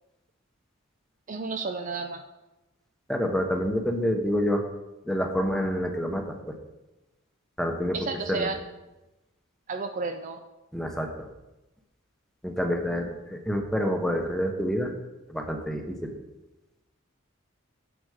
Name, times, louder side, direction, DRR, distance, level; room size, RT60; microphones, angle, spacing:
voice 1, 1.3-2.2 7.9-8.6 9.7-10.4, right 4 dB, 35° right, 6 dB, 0.4 m, -32 dB
voice 2, 3.1-4.6 5.0-6.6 7.6-8.5 10.7-11.3 12.4-14.9 15.3-16.1, equal, ahead, 3 dB, 0.9 m, -28 dB
7.9 x 7.9 x 4.9 m, 1.0 s
head